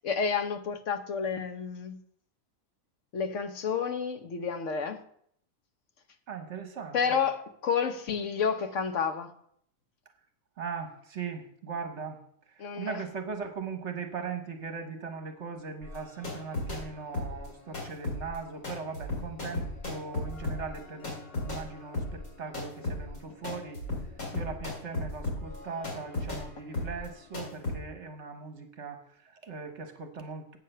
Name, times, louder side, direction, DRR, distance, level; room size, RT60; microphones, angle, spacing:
voice 1, 0.0-2.0 3.1-5.0 6.9-9.3 12.6-13.0, left 6 dB, 60° left, 1.2 m, -30 dB
voice 2, 6.3-7.2 10.6-12.2 12.5-23.8 24.3-30.6, right 5 dB, 55° right, 1.4 m, -39 dB
sound 1, 15.8-16.8 17.1-26.5 26.7-27.1 27.3-27.8, left 2 dB, 80° left, 3.7 m, -35 dB
8.7 x 6.6 x 6.6 m
omnidirectional pair, 1.5 m